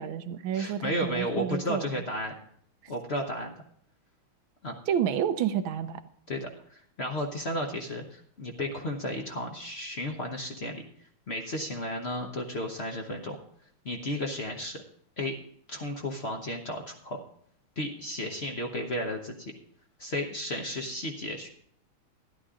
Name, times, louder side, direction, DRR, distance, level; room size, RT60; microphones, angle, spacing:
voice 1, 0.0-2.0 4.9-6.0, right 9 dB, 80° right, 10 dB, 1.5 m, -30 dB
voice 2, 0.5-2.3 2.9-3.5 4.6-4.8 6.3-10.8 11.3-13.4 13.8-14.8 15.2-15.3 15.7-17.2 17.8-19.5 20.0-21.5, left 1 dB, 40° left, 2 dB, 1.0 m, -33 dB
12.5 x 11.0 x 3.7 m, 0.66 s
omnidirectional pair, 2.2 m